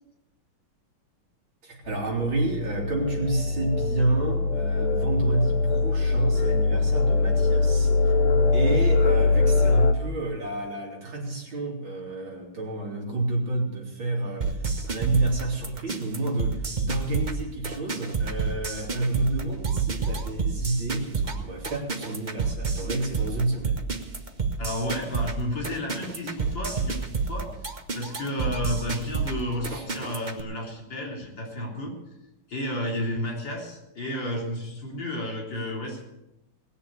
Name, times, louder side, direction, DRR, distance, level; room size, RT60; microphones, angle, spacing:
voice 1, 1.6-8.1 8.5-23.8 29.7-29.9, right 2 dB, 70° right, -1 dB, 3.8 m, -29 dB
sound 1, 1.9-9.9, left 3 dB, 85° left, 1.9 m, -22 dB
sound 2, 14.4-30.4, right 4 dB, 35° right, 0.8 m, -29 dB
voice 2, 24.6-27.5 27.9-31.9 32.5-36.0, left 1 dB, 60° left, -1 dB, 4.3 m, -32 dB
19.0 x 6.9 x 8.2 m, 0.93 s
omnidirectional pair, 2.3 m